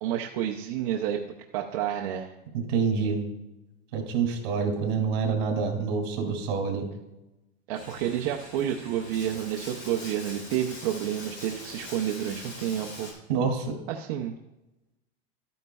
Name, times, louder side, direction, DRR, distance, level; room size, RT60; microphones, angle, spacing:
voice 1, 0.0-1.2 1.5-2.3 7.7-13.1 13.9-14.4, right 10 dB, 40° right, 0 dB, 0.5 m, -30 dB
voice 2, 2.5-3.2 3.9-6.9 13.3-13.8, right 5 dB, 55° right, 2 dB, 2.4 m, -27 dB
Bathtub (filling or washing), 7.7-13.1, left 2 dB, 45° left, 2.8 m, -43 dB
12.5 x 9.3 x 2.3 m, 0.96 s
supercardioid pair, 175°, 30 cm